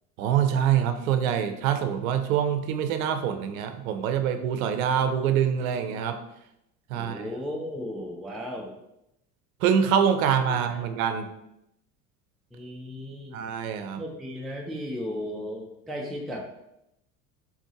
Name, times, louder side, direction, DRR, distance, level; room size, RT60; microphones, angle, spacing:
voice 1, 0.2-6.2 6.9-7.2 9.6-11.3 13.3-14.0, right 8 dB, 60° right, 8 dB, 0.7 m, -25 dB
voice 2, 6.9-8.7 10.7-10.9 12.5-13.4 14.0-16.4, equal, ahead, 0 dB, 0.4 m, -35 dB
4.3 x 4.0 x 2.9 m, 0.83 s
figure-of-eight pair, 75°, 48 cm